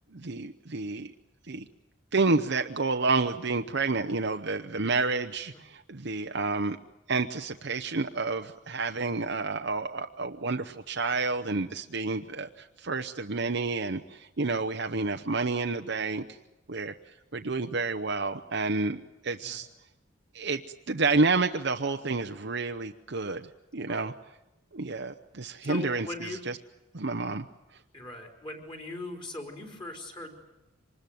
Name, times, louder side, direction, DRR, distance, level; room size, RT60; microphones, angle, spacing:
voice 1, 0.1-1.1 1.5-1.7 2.1-6.8 7.1-16.2 16.7-16.9 17.3-19.7 20.3-20.6 20.9-24.1 24.7-26.6 26.9-27.5, right 3 dB, 60° right, 5 dB, 0.8 m, -29 dB
voice 2, 25.6-26.4 27.9-30.3, left 2 dB, 25° left, 3 dB, 4.1 m, -40 dB
25.5 x 20.5 x 9.3 m, 0.98 s
head